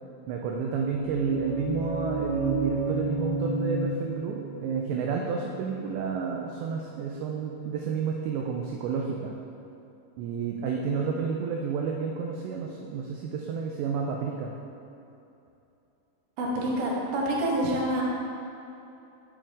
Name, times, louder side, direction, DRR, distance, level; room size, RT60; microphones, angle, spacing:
voice 1, 0.3-9.3 10.2-14.5, right 6 dB, 85° right, 0 dB, 2.5 m, -30 dB
sound 1, 0.9-6.6, right 2 dB, 85° left, 1.5 m, -32 dB
voice 2, 16.4-18.0, right 1 dB, 60° right, -4 dB, 2.2 m, -27 dB
15.5 x 5.4 x 3.6 m, 2.8 s
omnidirectional pair, 5.7 m